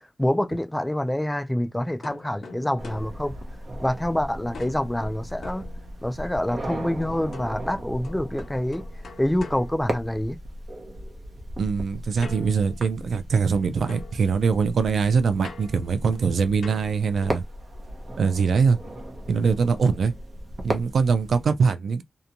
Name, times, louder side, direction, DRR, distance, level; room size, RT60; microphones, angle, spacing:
voice 1, 0.2-3.3 3.8-5.6 6.0-8.8 9.2-10.4, left 1 dB, 10° left, 0.3 m, -26 dB
sound 1, 2.0-4.1 4.5-6.4 7.3-10.6 12.2-13.6 13.9-17.6, left 4 dB, 80° left, 0.5 m, -46 dB
sound 2, 2.8-21.4, right 1 dB, 45° right, 0.8 m, -37 dB
voice 2, 11.6-17.4 18.2-18.8 19.3-20.1 20.6-22.0, right 5 dB, 85° right, 0.4 m, -22 dB
2.8 x 2.2 x 2.5 m
wide cardioid pair, 145°, 0 cm